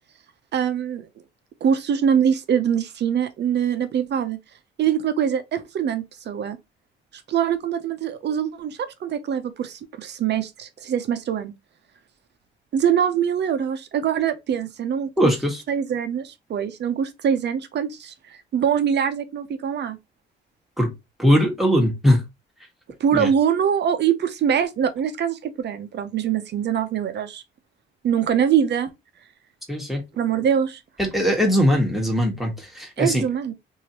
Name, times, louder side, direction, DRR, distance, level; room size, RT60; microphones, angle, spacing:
voice 1, 0.5-1.1 1.6-4.4 4.8-6.6 7.3-11.5 12.7-15.3 15.7-20.0 23.0-27.4 28.0-28.9 30.2-30.8 33.0-33.5, right 8 dB, 60° right, 0.8 m, -23 dB
voice 2, 15.2-15.6 20.8-20.9 21.2-22.2 23.1-23.3 29.7-30.0 31.0-33.2, equal, ahead, 1.5 m, -20 dB
3.1 x 2.7 x 2.9 m
cardioid pair, 90°, 20 cm